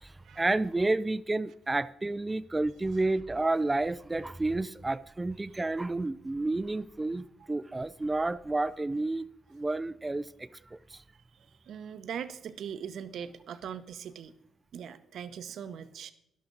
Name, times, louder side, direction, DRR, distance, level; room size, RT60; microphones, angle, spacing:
voice 1, 0.0-11.0, right 2 dB, 15° right, 0.5 m, -31 dB
voice 2, 11.7-14.3 14.7-16.1, right 8 dB, 70° right, 0.8 m, -40 dB
12.0 x 11.5 x 3.9 m
cardioid pair, 90°, 0 cm